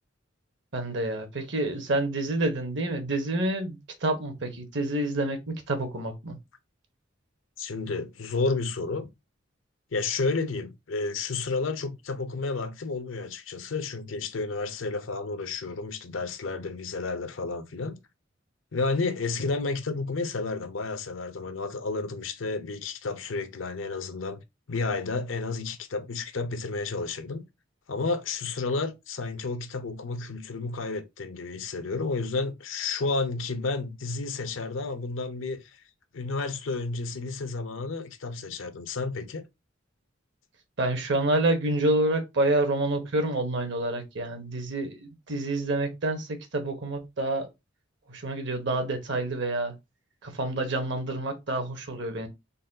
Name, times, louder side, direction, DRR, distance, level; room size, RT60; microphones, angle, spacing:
voice 1, 0.7-6.4 40.8-47.5 48.1-49.7 50.2-52.3, right 2 dB, 65° right, 1.0 m, -28 dB
voice 2, 7.6-9.1 9.9-18.0 18.7-24.4 24.7-27.5 27.9-35.6 36.1-39.4, left 3 dB, 90° left, 0.6 m, -31 dB
4.0 x 2.3 x 3.8 m
head